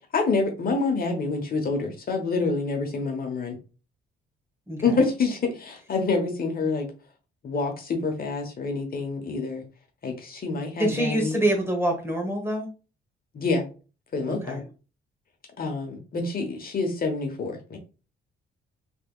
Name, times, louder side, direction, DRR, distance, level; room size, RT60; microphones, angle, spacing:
voice 1, 0.1-3.6 4.8-6.9 7.4-9.6 10.0-11.4 13.3-13.7 14.1-14.6 15.6-17.8, left 3 dB, 50° left, 3 dB, 1.1 m, -27 dB
voice 2, 10.8-12.7 14.3-14.6, right 1 dB, 10° right, 2 dB, 1.4 m, -26 dB
3.5 x 3.3 x 2.3 m, 0.33 s
cardioid pair, 90°, 20 cm